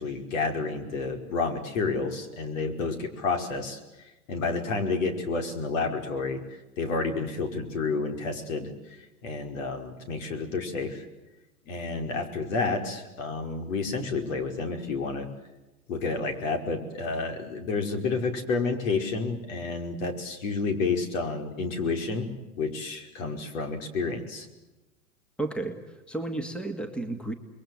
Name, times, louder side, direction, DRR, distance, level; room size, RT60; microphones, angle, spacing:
voice 1, 0.0-3.8 4.3-6.4 6.8-11.1 11.7-15.3 15.9-22.3 22.6-24.5, left 4 dB, 65° left, 5 dB, 5.4 m, -30 dB
voice 2, 25.4-27.3, right 2 dB, ahead, 8 dB, 2.2 m, -33 dB
28.5 x 22.0 x 8.0 m, 1.1 s
hypercardioid pair, 115°, 43 cm